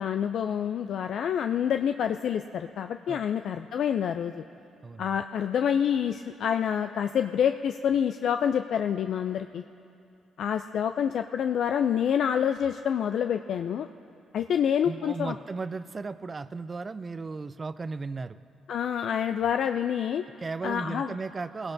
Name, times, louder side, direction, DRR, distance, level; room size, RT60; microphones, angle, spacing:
voice 1, 0.0-4.4 5.0-9.6 10.4-13.9 14.3-15.3 18.7-20.2 20.6-21.1, left 8 dB, 65° left, 7 dB, 0.3 m, -27 dB
voice 2, 4.8-5.2 14.8-18.4 20.4-21.7, right 4 dB, 30° right, 15 dB, 0.4 m, -35 dB
19.0 x 16.5 x 2.7 m, 2.5 s
cardioid pair, 90°, 0 cm